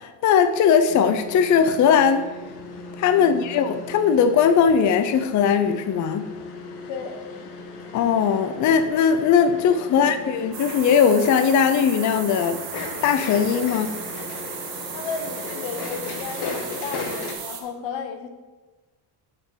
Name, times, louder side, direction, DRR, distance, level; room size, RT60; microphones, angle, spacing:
voice 1, 0.0-2.3 3.0-6.3 7.9-12.6 13.0-14.0, left 7 dB, 45° left, 9 dB, 0.5 m, -19 dB
sound 1, 0.9-17.3, left 4 dB, 60° left, 1.3 m, -37 dB
voice 2, 6.9-7.2 9.9-10.1 14.9-18.3, left 5 dB, 90° left, 6 dB, 1.4 m, -34 dB
sound 2, 10.5-17.6, right 7 dB, 85° right, 1.7 m, -35 dB
6.5 x 6.1 x 6.6 m, 1.2 s
cardioid pair, 165°, 44 cm